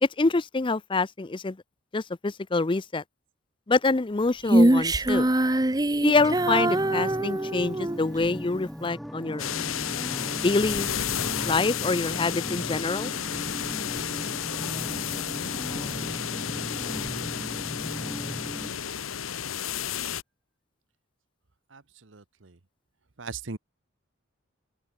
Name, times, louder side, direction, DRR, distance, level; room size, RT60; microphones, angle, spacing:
voice 1, 0.0-1.6 1.9-3.0 3.7-5.3 6.0-9.5 10.4-10.9 11.4-13.1, left 3 dB, 25° left, 0.5 m, -26 dB
Female singing, 4.5-8.0, right 1 dB, 20° right, 0.9 m, -23 dB
sound 1, 6.1-18.7, equal, ahead, 1.8 m, -38 dB
sound 2, 9.4-20.2, left 8 dB, 85° left, 1.1 m, -32 dB
voice 2, 21.7-22.6 23.2-23.6, right 4 dB, 65° right, 1.1 m, -39 dB
open air
head